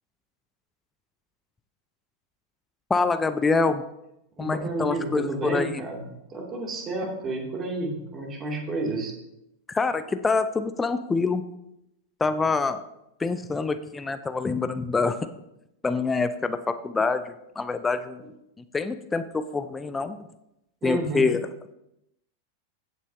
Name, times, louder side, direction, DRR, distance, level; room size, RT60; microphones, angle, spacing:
voice 1, 2.9-3.8 4.4-5.8 9.7-11.4 12.2-12.8 13.2-15.2 15.8-17.2 17.6-18.3 18.7-20.2 20.8-21.4, left 4 dB, 15° left, 11 dB, 0.5 m, -25 dB
voice 2, 4.4-6.0 6.3-9.1 20.8-21.2, right 2 dB, 25° right, 0 dB, 2.6 m, -30 dB
16.0 x 8.3 x 2.8 m, 0.85 s
figure-of-eight pair, 90°, 0 cm